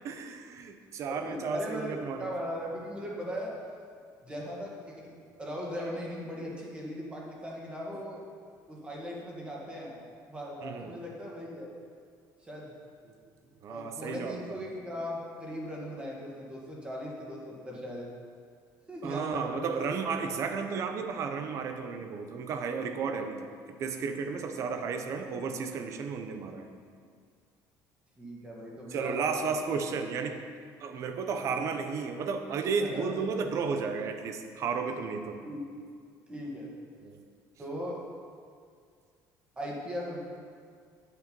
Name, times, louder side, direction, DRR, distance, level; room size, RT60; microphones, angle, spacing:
voice 1, 0.0-2.3 10.6-10.9 13.1-13.2 13.6-14.6 19.0-26.7 28.9-30.4 30.8-35.4 37.0-37.2, right 5 dB, 45° right, 7 dB, 0.8 m, -33 dB
voice 2, 1.1-3.5 4.2-8.2 8.7-10.0 10.3-11.7 12.4-12.7 13.7-18.1 18.9-19.8 28.2-29.3 31.4-31.7 32.8-33.2 35.4-35.6 36.3-36.7 37.6-38.0 39.6-40.2, equal, 15° right, -3 dB, 1.8 m, -38 dB
9.0 x 8.2 x 5.3 m, 2.1 s
cardioid pair, 170°, 7 cm